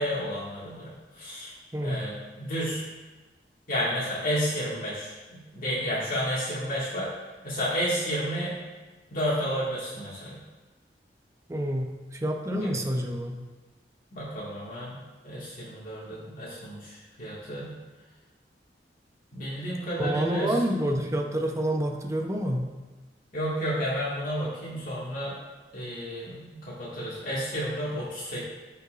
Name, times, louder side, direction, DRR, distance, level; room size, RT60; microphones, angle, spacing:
voice 1, 0.0-1.5 1.8-2.8 3.7-7.1 7.4-8.6 9.1-10.4 12.5-12.8 14.1-15.0 15.2-17.8 19.3-20.6 20.8-21.0 23.3-25.3 25.7-28.4, equal, 55° left, -8 dB, 2.0 m, -31 dB
voice 2, 1.7-2.1 11.5-13.4 20.0-22.7, right 1 dB, 20° right, 2 dB, 0.8 m, -28 dB
14.0 x 5.5 x 2.5 m, 1.2 s
head